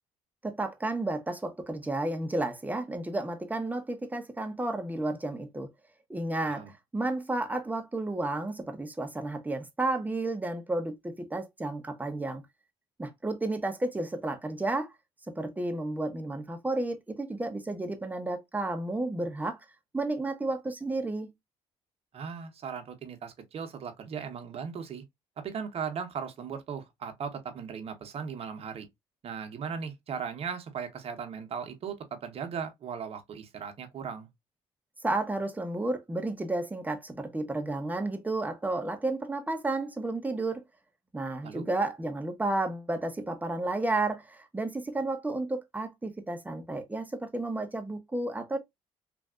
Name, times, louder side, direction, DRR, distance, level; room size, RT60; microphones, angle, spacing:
voice 1, 0.4-5.7 6.1-12.4 13.0-14.9 15.3-19.6 19.9-21.3 35.0-40.6 41.1-48.6, right 2 dB, 15° right, 0.9 m, -32 dB
voice 2, 22.1-25.0 25.4-28.9 29.2-34.3 41.4-41.7, right 6 dB, 50° right, 0.9 m, -37 dB
3.4 x 2.6 x 2.4 m
supercardioid pair, 75°, 13 cm